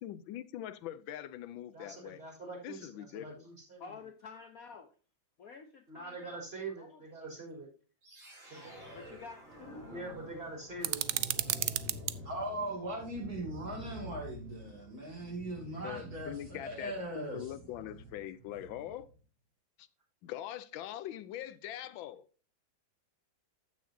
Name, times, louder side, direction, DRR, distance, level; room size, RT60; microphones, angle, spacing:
voice 1, 0.0-2.2 2.6-3.3 15.8-19.1 20.2-22.3, left 12 dB, 85° left, 1.4 m, -42 dB
voice 2, 1.7-4.0 5.9-7.7 8.5-8.9 9.9-11.1, right 3 dB, 30° right, 4.0 m, -44 dB
voice 3, 3.8-4.9 5.4-6.4 6.8-7.0 8.9-9.9 15.6-15.8, left 5 dB, 60° left, 1.0 m, -50 dB
sound 1, 8.0-19.1, equal, 90° right, 5.0 m, -49 dB
sound 2, 10.8-12.2, right 14 dB, 75° right, 0.9 m, -33 dB
voice 4, 12.2-17.5, right 1 dB, 50° right, 3.1 m, -39 dB
14.5 x 6.4 x 2.7 m
omnidirectional pair, 2.1 m